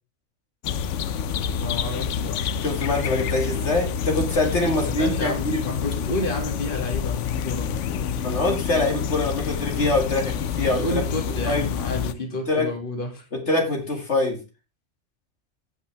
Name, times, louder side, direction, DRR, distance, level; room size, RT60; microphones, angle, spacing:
sound 1, 0.6-12.1, left 7 dB, 90° left, 1.0 m, -28 dB
voice 1, 1.5-2.4 4.6-8.4 10.8-13.2, left 1 dB, 45° left, 2 dB, 2.4 m, -31 dB
voice 2, 2.6-5.6 8.2-10.8 11.5-11.7 12.5-12.7 13.5-14.4, left 2 dB, 70° left, 2 dB, 2.4 m, -24 dB
17.0 x 5.7 x 3.4 m, 0.28 s
omnidirectional pair, 1.2 m